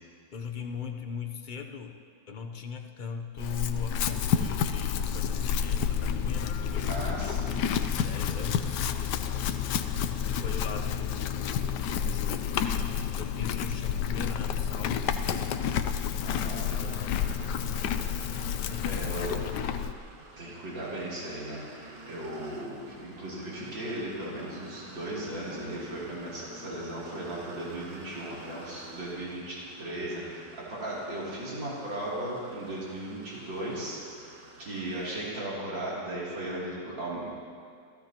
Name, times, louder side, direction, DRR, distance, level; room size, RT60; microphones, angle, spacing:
voice 1, 0.3-2.0 2.3-6.8 7.5-7.7 8.0-9.0 9.9-11.7 12.0-15.6 16.3-17.8 18.7-19.0 19.4-19.7, left 6 dB, 45° left, 5 dB, 0.6 m, -40 dB
Chewing mastication / Livestock farm animals working animals, 3.4-19.9, left 8 dB, 70° left, 1.2 m, -30 dB
voice 2, 6.9-7.6 16.2-16.7 17.0-17.3 18.8-19.4 20.4-34.0 34.3-37.3, right 1 dB, 80° right, -7 dB, 3.9 m, -37 dB
sound 1, 16.3-35.3, right 1 dB, 35° right, 1.3 m, -49 dB
29.0 x 15.5 x 3.0 m, 2.2 s
omnidirectional pair, 2.0 m